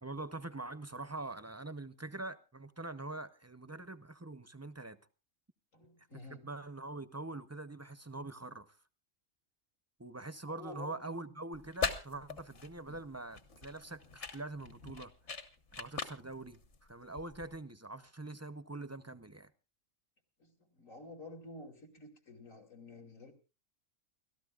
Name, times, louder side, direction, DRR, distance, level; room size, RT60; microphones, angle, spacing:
voice 1, 0.0-5.0 6.3-8.8 10.0-15.1 15.7-19.5, right 2 dB, 20° right, 0.5 m, -44 dB
voice 2, 5.7-6.5 10.5-11.3 12.9-13.0 20.4-23.3, left 2 dB, 85° left, 3.3 m, -51 dB
sound 1, 11.5-17.6, left 5 dB, 60° left, 1.7 m, -42 dB
29.5 x 13.5 x 2.4 m
omnidirectional pair, 1.3 m